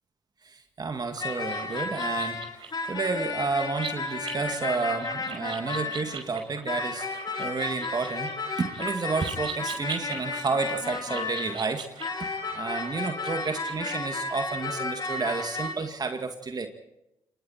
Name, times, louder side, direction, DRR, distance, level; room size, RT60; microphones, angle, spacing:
voice 1, 0.4-2.4 2.9-11.9 12.5-16.7, right 4 dB, 40° right, 6 dB, 2.3 m, -31 dB
sound 1, 1.2-6.3 6.7-11.7 12.0-15.7, left 3 dB, 45° left, 4.2 m, -33 dB
sound 2, 1.2-13.9, right 6 dB, 55° right, 5.6 m, -42 dB
27.5 x 21.5 x 4.4 m, 0.88 s
supercardioid pair, 55°, 10 cm